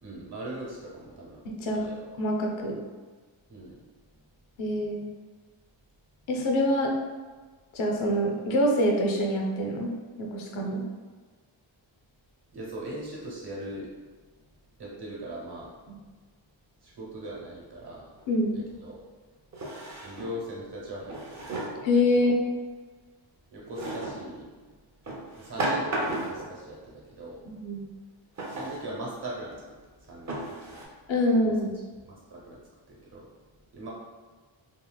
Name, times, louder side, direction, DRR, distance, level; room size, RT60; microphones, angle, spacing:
voice 1, 0.0-1.4 1.7-2.0 3.5-3.8 12.5-13.9 14.8-15.7 16.8-18.1 18.5-19.0 20.0-21.4 22.1-22.3 23.5-24.5 25.4-27.4 28.5-29.7 30.1-30.8 32.1-32.6 32.9-33.2 33.7-33.9, right 1 dB, 55° right, -4 dB, 0.9 m, -40 dB
voice 2, 1.4-1.8 2.2-2.8 4.6-5.1 6.3-7.0 7.7-9.9 10.2-10.8 18.3-18.6 21.8-22.6 27.5-27.8 31.1-31.7, left 1 dB, 70° left, 1 dB, 0.6 m, -25 dB
Drawer open or close, 18.2-18.3 19.5-20.4 21.1-21.9 23.7-24.2 25.1-26.5 28.4-28.8 29.5-29.6 30.3-30.8, right 1 dB, 35° right, 0.5 m, -33 dB
3.0 x 2.8 x 2.2 m, 1.4 s
wide cardioid pair, 140°, 49 cm